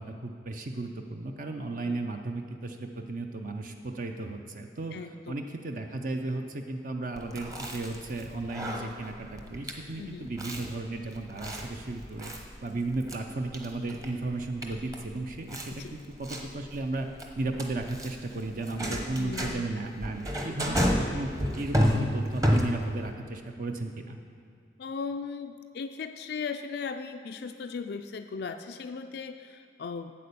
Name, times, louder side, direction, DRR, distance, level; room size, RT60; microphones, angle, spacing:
voice 1, 0.0-12.3 12.6-17.1 17.4-20.8 21.1-24.2, right 2 dB, 50° right, 4 dB, 0.6 m, -35 dB
voice 2, 4.9-5.4 10.0-10.3 15.7-15.9 19.2-19.7 24.8-30.1, left 5 dB, 60° left, 7 dB, 0.4 m, -37 dB
Chewing mastication, 7.2-23.1, equal, 20° right, 0.9 m, -32 dB
8.6 x 8.5 x 6.8 m, 2.3 s
head